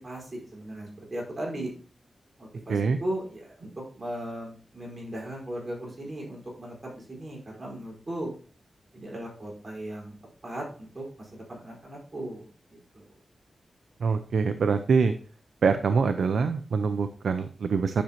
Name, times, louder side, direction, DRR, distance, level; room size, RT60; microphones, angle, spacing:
voice 1, 0.0-1.7 2.4-8.3 8.9-10.1 10.4-13.1, right 1 dB, 30° right, -3 dB, 4.6 m, -37 dB
voice 2, 14.0-15.1 15.6-18.0, right 5 dB, 85° right, 9 dB, 0.5 m, -24 dB
10.0 x 6.3 x 2.9 m, 0.41 s
wide cardioid pair, 95°, 0 cm